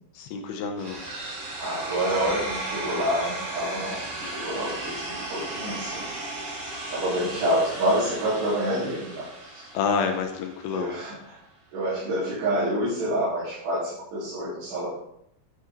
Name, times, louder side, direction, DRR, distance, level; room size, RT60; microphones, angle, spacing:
voice 1, 0.1-1.0 4.2-4.8 9.7-10.9, left 5 dB, 75° left, 4 dB, 2.8 m, -29 dB
sound 1, 0.8-10.8, right 2 dB, 50° right, 4.5 m, -35 dB
voice 2, 1.6-6.0 6.9-9.3 10.7-11.1 11.7-14.9, right 1 dB, 80° right, -11 dB, 5.5 m, -27 dB
11.0 x 8.0 x 3.2 m, 0.73 s
omnidirectional pair, 4.7 m